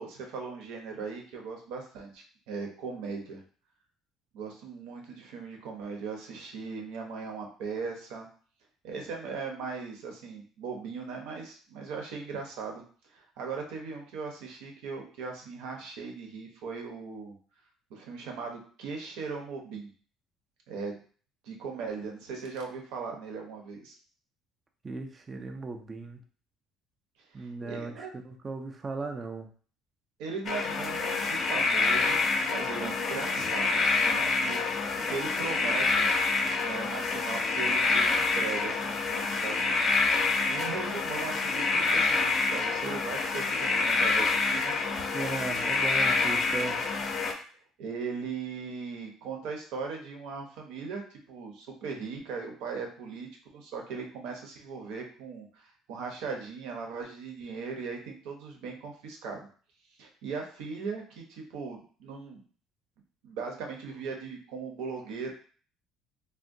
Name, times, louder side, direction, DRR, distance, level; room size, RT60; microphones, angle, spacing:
voice 1, 0.0-3.4 4.3-8.3 8.8-12.8 13.1-17.4 17.9-19.9 20.7-21.0 21.4-23.9 27.3-28.1 30.2-36.1 36.6-39.6 40.5-44.7 47.8-51.0 51.3-59.5 60.0-62.4 63.2-65.3, right 5 dB, 80° right, 2 dB, 0.7 m, -38 dB
voice 2, 24.8-26.2 27.3-29.5 45.1-46.8, right 3 dB, 25° right, 5 dB, 0.3 m, -37 dB
sound 1, 30.5-47.3, left 3 dB, 40° left, 0.5 m, -27 dB
3.5 x 2.2 x 2.6 m, 0.43 s
cardioid pair, 140°, 0 cm